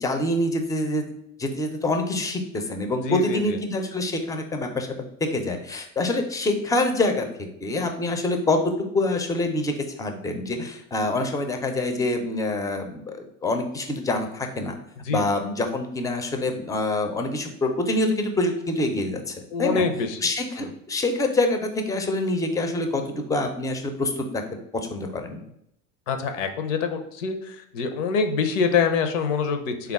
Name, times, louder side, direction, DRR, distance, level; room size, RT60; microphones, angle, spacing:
voice 1, 0.0-1.1 1.4-14.8 15.1-19.8 20.2-24.4 24.9-25.4, left 2 dB, 10° left, 5 dB, 0.4 m, -26 dB
voice 2, 3.0-3.6 15.1-15.2 19.5-20.2 20.6-20.7 26.1-29.9, left 5 dB, 75° left, 7 dB, 0.6 m, -25 dB
3.5 x 2.3 x 3.5 m, 0.76 s
hypercardioid pair, 85°, 38 cm